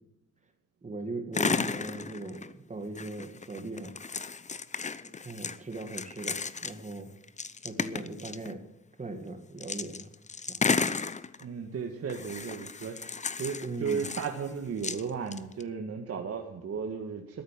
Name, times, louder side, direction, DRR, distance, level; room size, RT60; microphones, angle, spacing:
voice 1, 0.8-4.0 5.0-7.1 7.6-8.6 9.0-10.1 10.5-10.6 13.6-14.1, right 2 dB, 25° right, 6 dB, 2.1 m, -39 dB
sound 1, 1.3-2.5 3.0-7.0 7.2-8.5 9.6-11.4 12.1-14.5 14.8-15.6, left 5 dB, 25° left, 0.8 m, -33 dB
voice 2, 11.4-17.4, right 6 dB, 50° right, 3 dB, 1.8 m, -35 dB
13.5 x 9.4 x 7.5 m, 0.85 s
cardioid pair, 90°, 30 cm